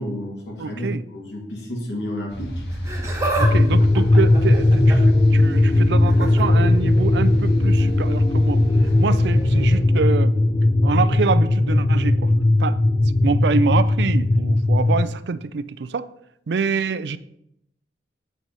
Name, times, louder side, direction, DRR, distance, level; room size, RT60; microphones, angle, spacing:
voice 1, 0.0-2.5, left 1 dB, 90° left, -1 dB, 2.3 m, -31 dB
voice 2, 0.6-1.0 3.4-8.6 9.0-10.3 10.8-12.3 12.6-12.8 13.2-16.1 16.5-17.2, right 5 dB, 75° right, 15 dB, 0.4 m, -26 dB
sound 1, 2.3-9.8, equal, 75° left, 1.3 m, -29 dB
Laughter, 2.7-3.5 3.8-5.2 6.1-6.4 7.8-7.9 8.8-8.9, right 2 dB, 15° right, 1.7 m, -28 dB
sound 2, 3.4-15.0, left 2 dB, 30° left, 0.4 m, -17 dB
8.1 x 6.0 x 4.1 m, 0.78 s
head